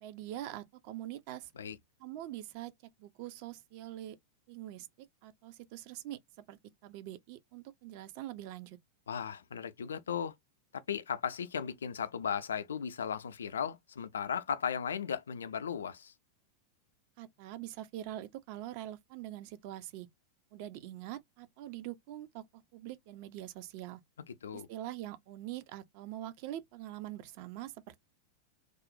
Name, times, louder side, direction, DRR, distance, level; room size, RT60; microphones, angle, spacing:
voice 1, 0.0-1.5 2.0-2.7 3.0-4.2 4.5-6.2 6.5-8.8 17.2-20.1 20.5-24.0 24.5-28.0, right 13 dB, 45° right, 0.3 m, -44 dB
voice 2, 9.1-10.3 10.7-16.1 24.3-24.7, left 7 dB, 65° left, 0.3 m, -36 dB
2.4 x 2.0 x 2.6 m
figure-of-eight pair, 90°, 0 cm